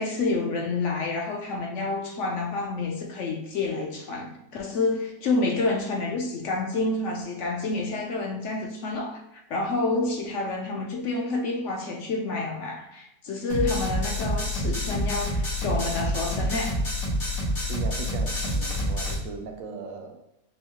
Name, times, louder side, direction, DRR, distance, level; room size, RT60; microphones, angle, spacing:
voice 1, 0.0-9.2 9.5-16.8, left 3 dB, 65° left, 0.8 m, -28 dB
sound 1, 13.5-19.1, equal, 85° left, 2.0 m, -27 dB
voice 2, 17.7-20.4, right 5 dB, 75° right, 0.9 m, -38 dB
5.3 x 2.0 x 2.9 m
omnidirectional pair, 1.5 m